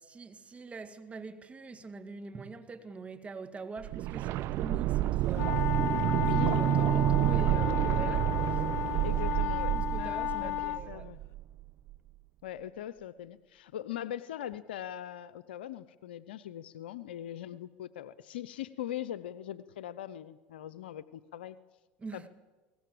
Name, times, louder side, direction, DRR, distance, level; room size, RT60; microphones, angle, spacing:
voice 1, 0.0-5.7 6.1-11.1 22.0-22.3, right 4 dB, 25° right, 2.1 m, -44 dB
sound 1, 3.8-11.6 11.9-12.0, right 13 dB, 55° right, 0.7 m, -29 dB
sound 2, 5.3-10.8, left 13 dB, 50° left, 1.0 m, -34 dB
voice 2, 6.2-6.9 9.0-11.2 12.4-21.6 22.1-22.2, left 11 dB, 90° left, 0.7 m, -41 dB
23.0 x 19.0 x 7.8 m
hypercardioid pair, 95°, 5 cm